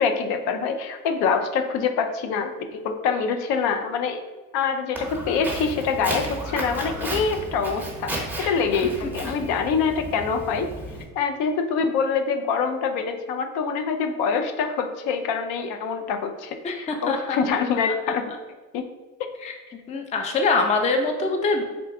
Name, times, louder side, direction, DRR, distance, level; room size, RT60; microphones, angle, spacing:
voice 1, 0.0-4.2 4.5-10.7 11.2-18.2 18.7-18.8, left 5 dB, 70° left, 6 dB, 0.5 m, -25 dB
Walk footsteps, 4.9-11.0, right 1 dB, 5° right, 0.8 m, -33 dB
voice 2, 16.6-17.4 19.4-19.5 19.9-21.6, left 3 dB, 20° left, 4 dB, 0.4 m, -24 dB
3.8 x 2.2 x 3.5 m, 1.3 s
supercardioid pair, 100°, 41 cm